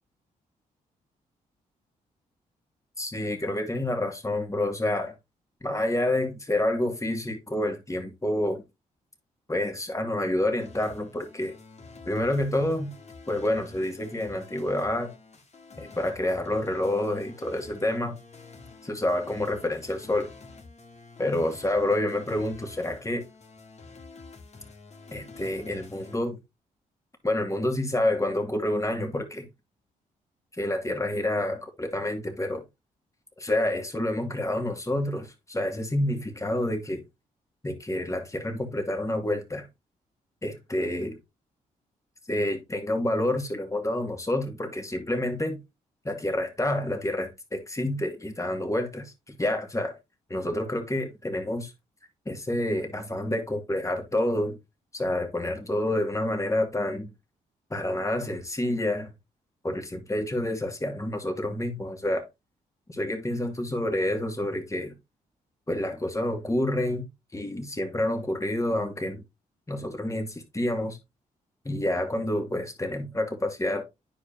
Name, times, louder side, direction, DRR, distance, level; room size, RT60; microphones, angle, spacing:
voice 1, 3.0-5.1 5.6-8.6 9.5-11.5 12.1-12.9 13.3-15.1 15.8-18.2 18.8-20.3 21.2-23.2 25.1-26.4 27.2-29.5 30.5-32.6 33.4-37.0 37.6-39.7 40.4-41.2 42.3-45.6 46.0-50.0 50.3-51.7 52.3-54.6 54.9-57.1 57.7-59.1 59.6-62.3 62.9-64.9 65.7-67.1 67.3-69.2 69.7-71.0 71.6-73.8, left 1 dB, 20° left, 2.5 m, -28 dB
sound 1, 10.6-26.2, left 3 dB, 45° left, 2.2 m, -48 dB
10.0 x 4.9 x 2.9 m
supercardioid pair, 55°, 16 cm